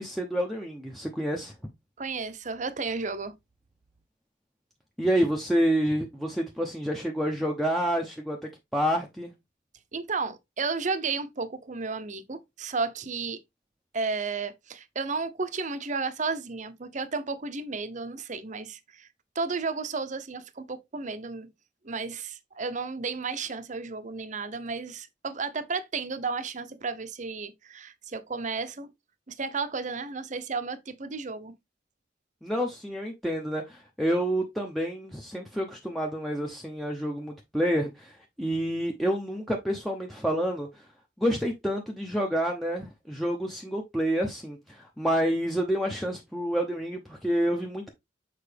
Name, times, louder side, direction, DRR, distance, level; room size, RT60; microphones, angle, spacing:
voice 1, 0.0-1.5 5.0-8.4 8.7-9.3 32.4-40.7 41.2-47.9, equal, ahead, 0.7 m, -28 dB
voice 2, 2.0-3.3 9.9-13.4 13.9-19.1 19.3-21.5 21.8-28.9 29.3-31.5, right 4 dB, 40° right, 0.7 m, -33 dB
6.8 x 4.5 x 3.3 m
head